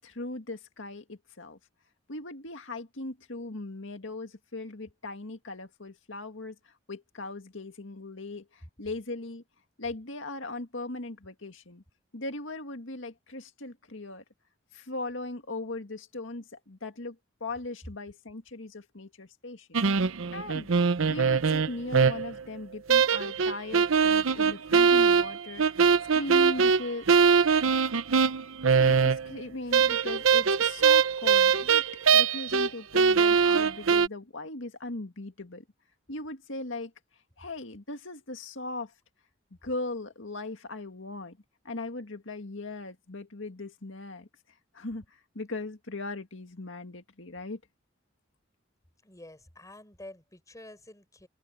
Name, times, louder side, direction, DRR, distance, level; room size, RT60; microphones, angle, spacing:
voice 1, 0.0-1.6 2.1-9.4 9.8-11.8 12.1-14.2 14.7-19.8 20.3-20.7 21.1-25.7 26.1-27.1 28.7-31.9 32.1-35.6 36.1-36.9 37.4-38.9 39.6-41.4 41.6-44.3 44.7-47.6, left 2 dB, 70° left, 2.1 m, -39 dB
sound 1, 19.7-22.4 22.9-29.4 29.7-32.7 32.9-34.1, right 6 dB, 85° right, 0.7 m, -22 dB
voice 2, 49.0-51.3, left 1 dB, 15° left, 5.2 m, -48 dB
open air
head